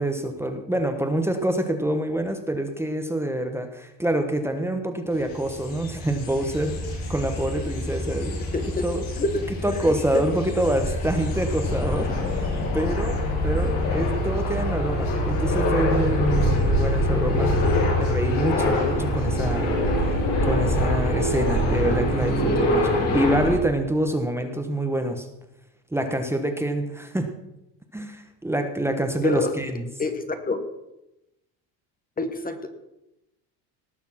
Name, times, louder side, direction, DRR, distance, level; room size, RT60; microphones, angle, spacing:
voice 1, 0.0-8.4 8.8-9.0 9.6-12.1 12.4-17.5 18.0-19.7 20.4-25.3 25.9-27.3 27.9-29.8, right 1 dB, 5° right, 5 dB, 1.3 m, -26 dB
sound 1, 5.2-23.5, left 1 dB, 90° left, 6.3 m, -24 dB
voice 2, 8.5-8.9 9.2-9.3 9.7-10.2 29.2-29.5 30.0-30.6 32.2-32.7, left 3 dB, 20° left, 8 dB, 1.4 m, -27 dB
18.5 x 6.8 x 5.9 m, 0.91 s
cardioid pair, 115°, 39 cm